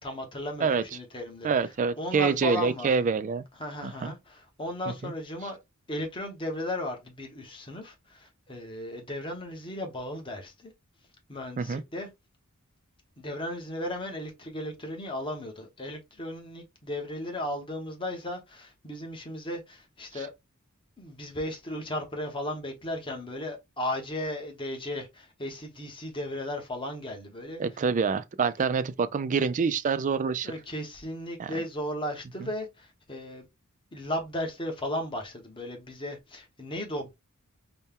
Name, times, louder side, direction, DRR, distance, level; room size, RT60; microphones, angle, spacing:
voice 1, 0.0-1.5 2.0-3.0 3.6-5.6 5.9-10.7 11.3-12.1 13.2-20.3 21.0-27.6 30.4-33.4 33.9-37.1, left 1 dB, 25° left, 1.0 m, -35 dB
voice 2, 1.4-3.4 3.8-4.1 4.9-5.1 11.6-11.8 20.1-20.2 27.6-30.5 31.4-31.5 32.4-32.5, right 5 dB, 35° right, 0.4 m, -26 dB
4.2 x 2.2 x 3.6 m
head